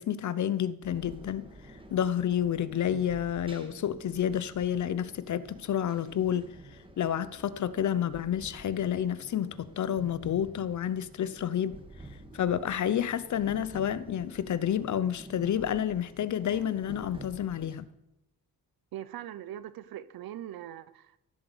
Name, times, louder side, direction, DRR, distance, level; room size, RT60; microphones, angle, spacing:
voice 1, 0.0-1.5 1.9-6.5 7.0-11.8 12.3-17.9, left 9 dB, 55° left, 0.8 m, -30 dB
sound 1, 0.8-17.8, right 1 dB, 15° right, 1.9 m, -50 dB
voice 2, 18.9-21.2, right 11 dB, 80° right, 0.8 m, -41 dB
15.0 x 8.1 x 7.9 m
cardioid pair, 130°, 35 cm